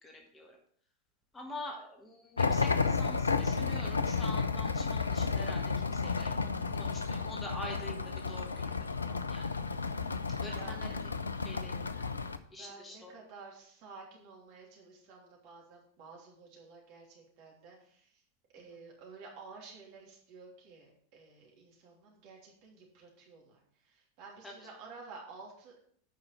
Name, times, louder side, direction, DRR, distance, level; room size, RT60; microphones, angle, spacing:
voice 1, 0.0-0.6 1.3-9.6 10.3-11.0 11.4-12.1 12.5-13.2 24.4-24.7, left 1 dB, 15° left, 2 dB, 1.5 m, -46 dB
sound 1, 2.4-12.4, left 4 dB, 75° left, 0.5 m, -32 dB
voice 2, 12.5-18.2 18.5-25.7, right 4 dB, 45° right, -2 dB, 3.1 m, -52 dB
8.8 x 5.5 x 5.7 m, 0.62 s
figure-of-eight pair, 90°, 0 cm